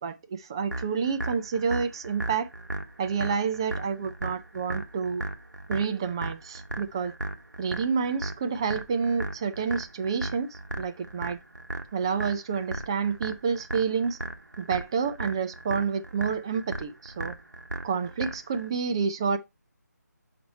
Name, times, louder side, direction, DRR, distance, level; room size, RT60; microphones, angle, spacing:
voice 1, 0.0-2.5 3.0-5.2 5.7-7.1 7.6-11.4 11.9-14.2 14.6-17.4 17.8-19.4, right 6 dB, 15° right, 0.4 m, -29 dB
sound 1, 0.7-18.7, right 2 dB, 85° right, 1.3 m, -36 dB
5.8 x 5.4 x 4.3 m
figure-of-eight pair, 160°, 10 cm